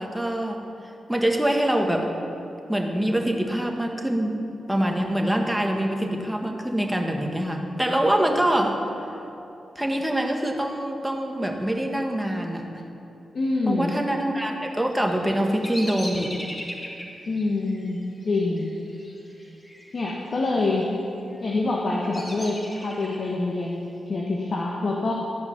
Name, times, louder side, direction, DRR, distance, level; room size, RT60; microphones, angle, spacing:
voice 1, 0.0-2.1 2.7-4.4 4.7-8.8 9.8-12.7 13.7-16.4, right 1 dB, 5° right, 2 dB, 1.7 m, -25 dB
voice 2, 13.3-13.9 17.3-18.8 19.9-20.9 21.4-25.1, left 2 dB, 55° left, -1 dB, 1.4 m, -26 dB
Bird vocalization bird call bird song, 14.9-19.9 20.2-20.8 21.3-23.3, left 1 dB, 30° left, 2.8 m, -39 dB
14.0 x 5.6 x 8.7 m, 2.8 s
cardioid pair, 50°, 0 cm